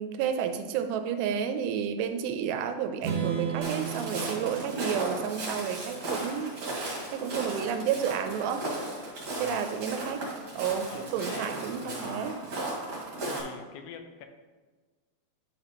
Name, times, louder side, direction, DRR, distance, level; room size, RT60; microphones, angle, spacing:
voice 1, 0.0-6.5 7.1-8.7 9.4-10.2 10.6-12.3, right 8 dB, 85° right, 7 dB, 2.7 m, -31 dB
Strum, 3.0-6.9, right 7 dB, 70° right, 1.9 m, -36 dB
Walk footsteps, 3.6-13.4, right 2 dB, 40° right, 1.9 m, -36 dB
voice 2, 10.9-12.3 13.2-14.3, left 7 dB, 85° left, 6 dB, 2.7 m, -44 dB
9.8 x 6.0 x 2.9 m, 1.4 s
omnidirectional pair, 4.9 m